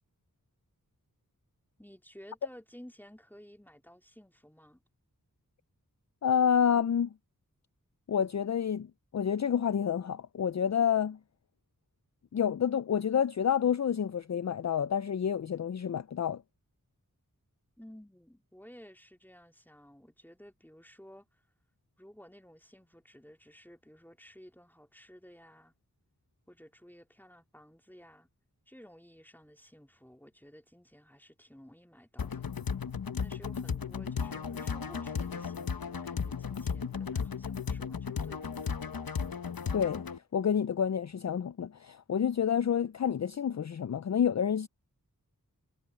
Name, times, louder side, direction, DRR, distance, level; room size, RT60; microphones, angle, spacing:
voice 1, 1.8-4.8 17.8-21.4 22.0-25.7 26.5-28.3 28.7-32.4 33.2-38.7, equal, 5° left, 3.1 m, -54 dB
voice 2, 6.2-7.1 8.1-8.9 9.1-11.2 12.3-16.4 39.7-40.0 40.3-44.7, left 8 dB, 50° left, 0.4 m, -28 dB
sound 1, 32.2-40.2, left 6 dB, 80° left, 0.9 m, -35 dB
wide cardioid pair, 55°, 35 cm